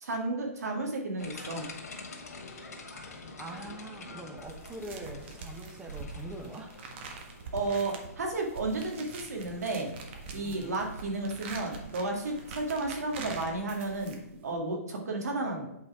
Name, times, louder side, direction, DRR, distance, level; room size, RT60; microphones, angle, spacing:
voice 1, 0.0-1.7 7.5-9.9 10.3-14.2 14.4-15.7, right 2 dB, 80° right, 1 dB, 2.1 m, -32 dB
sound 1, 1.2-13.8, left 3 dB, 75° left, 2.0 m, -48 dB
voice 2, 3.4-6.7 10.4-10.8, right 2 dB, 10° right, 1 dB, 1.0 m, -43 dB
sound 2, 4.4-14.5, right 3 dB, 45° right, 1.5 m, -44 dB
8.6 x 4.2 x 4.9 m, 0.80 s
hypercardioid pair, 145°, 8 cm